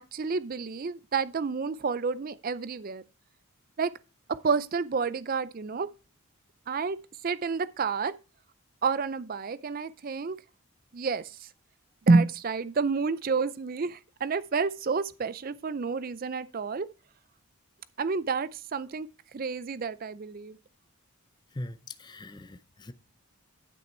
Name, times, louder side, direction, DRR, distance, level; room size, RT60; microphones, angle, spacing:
voice 1, 0.0-3.0 3.8-3.9 4.4-5.9 6.7-7.0 7.2-8.1 8.8-10.4 10.9-11.3 12.1-16.9 18.0-19.1 19.3-20.6, right 4 dB, 40° right, 0.4 m, -29 dB
voice 2, 21.5-22.9, left 1 dB, 20° left, 0.5 m, -41 dB
10.5 x 6.2 x 4.4 m
head